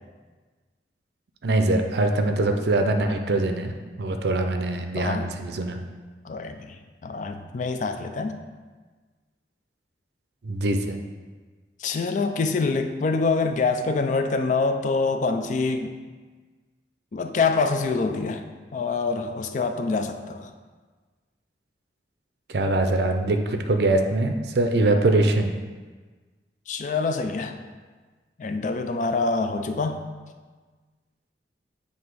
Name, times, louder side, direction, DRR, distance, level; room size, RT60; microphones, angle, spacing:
voice 1, 1.4-3.7 4.0-5.8 10.4-11.0 22.5-25.5, right 2 dB, 70° right, 5 dB, 0.5 m, -23 dB
voice 2, 4.9-5.3 6.2-8.4 11.8-15.9 17.1-18.4 18.7-20.5 26.7-27.6 28.4-30.1, left 4 dB, 45° left, 7 dB, 0.4 m, -25 dB
7.9 x 2.8 x 4.6 m, 1.4 s
head